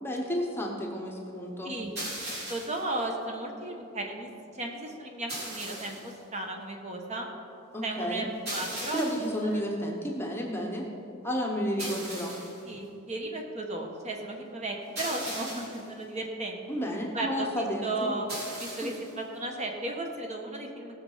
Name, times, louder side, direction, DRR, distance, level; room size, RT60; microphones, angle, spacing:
voice 1, 0.0-1.7 7.7-8.3 8.9-10.9 11.2-12.3 16.7-18.1 18.8-18.9, equal, 10° left, 0 dB, 1.0 m, -31 dB
sound 1, 2.0-2.9 5.3-6.1 8.5-9.4 11.8-12.6 15.0-15.9 18.3-19.1, right 1 dB, 50° right, 3.4 m, -38 dB
voice 2, 2.5-7.3 7.8-9.0 9.4-9.6 11.8-11.9 12.7-16.6 17.1-21.0, right 2 dB, 30° right, 2 dB, 1.3 m, -35 dB
17.0 x 6.5 x 5.6 m, 2.7 s
head